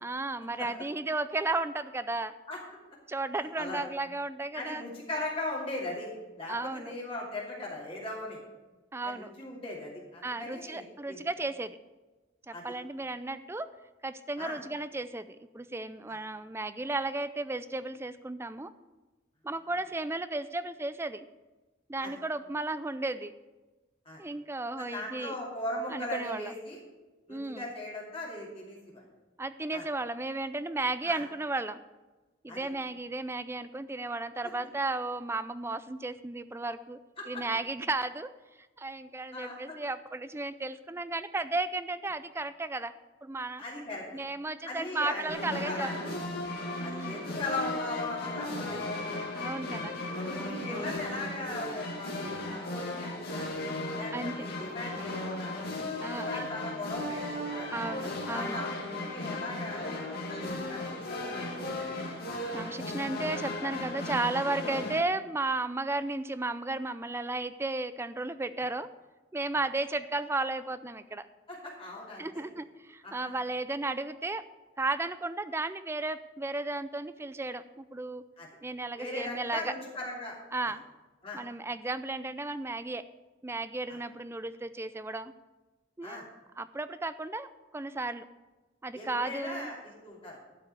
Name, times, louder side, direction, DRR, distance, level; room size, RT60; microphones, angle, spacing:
voice 1, 0.0-2.3 3.1-4.8 6.5-6.9 8.9-9.3 10.2-11.8 12.5-13.7 14.0-18.7 19.4-21.3 21.9-23.3 24.2-25.4 25.9-26.5 27.3-27.7 29.4-31.8 32.4-37.0 37.3-38.3 38.8-42.9 43.2-43.6 44.1-45.9 46.8-47.3 49.3-49.9 50.6-50.9 54.1-54.5 56.0-56.5 57.7-58.6 62.5-68.9 69.3-71.3 72.2-74.4 74.8-78.2 78.6-79.7 80.5-80.8 81.3-83.0 83.4-85.3 86.0-86.2 86.6-87.5 87.7-88.2 88.8-89.7, right 2 dB, 15° right, 13 dB, 0.4 m, -34 dB
voice 2, 4.5-6.1 6.4-8.4 9.0-11.2 12.5-12.6 14.4-14.6 16.1-16.2 22.0-22.1 24.0-24.2 24.8-26.8 27.3-29.0 29.7-29.9 31.0-31.2 32.5-32.7 37.2-37.4 39.3-39.7 43.6-44.0 44.6-45.9 46.8-49.0 49.7-49.9 50.2-53.6 53.9-55.6 56.1-57.8 58.2-58.7 59.1-60.2 60.7-61.9 64.3-64.4 71.5-72.4 73.0-73.4 78.4-78.5 79.0-80.4 81.2-81.4 83.9-84.0 86.0-86.2 88.9-90.4, left 2 dB, 30° left, -4 dB, 2.5 m, -39 dB
sound 1, 45.3-65.0, left 2 dB, 50° left, 2.3 m, -36 dB
12.0 x 5.5 x 8.2 m, 1.2 s
head